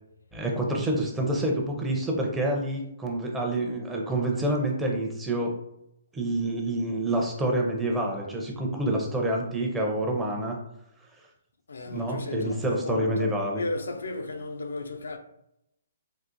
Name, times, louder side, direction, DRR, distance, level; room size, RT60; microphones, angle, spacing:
voice 1, 0.3-5.5 6.1-10.6 11.9-13.6, right 1 dB, 10° right, 0.5 m, -27 dB
voice 2, 11.7-15.2, left 2 dB, 90° left, 0.4 m, -34 dB
3.7 x 2.4 x 2.6 m
hypercardioid pair, 150°, 0 cm